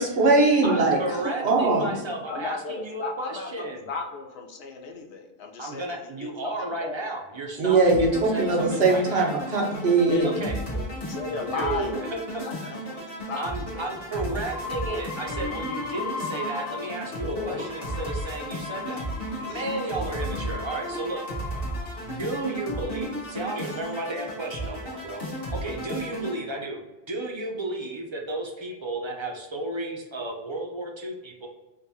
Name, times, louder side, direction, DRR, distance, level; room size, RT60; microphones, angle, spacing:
voice 1, 0.0-1.0 1.4-2.0 7.6-10.5, right 3 dB, 85° right, 0 dB, 1.2 m, -21 dB
voice 2, 0.6-3.9 5.6-9.4 10.2-10.6 11.3-12.7 13.4-19.0 19.4-21.3 22.0-25.2 25.5-31.5, right 2 dB, 35° right, 1 dB, 0.5 m, -33 dB
voice 3, 2.3-7.1 10.1-13.4 13.7-13.9 17.1-18.0 18.9-20.7, left 4 dB, 85° left, 3 dB, 0.9 m, -36 dB
sound 1, 7.9-26.4, right 1 dB, 65° left, 1.4 m, -34 dB
sound 2, 14.5-17.1 17.4-22.0 22.7-23.3, left 4 dB, 45° left, 0.6 m, -38 dB
5.0 x 2.3 x 2.7 m, 1.1 s
omnidirectional pair, 1.0 m